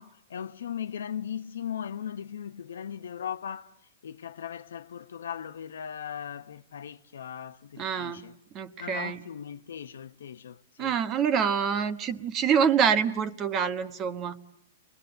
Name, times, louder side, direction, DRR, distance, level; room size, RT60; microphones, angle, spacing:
voice 1, 0.0-8.4 8.8-11.0, left 8 dB, 85° left, 1.0 m, -38 dB
voice 2, 7.8-8.2 8.5-9.2 10.8-14.4, right 7 dB, 25° right, 1.2 m, -26 dB
30.0 x 22.0 x 7.9 m
hypercardioid pair, 145°, 0 cm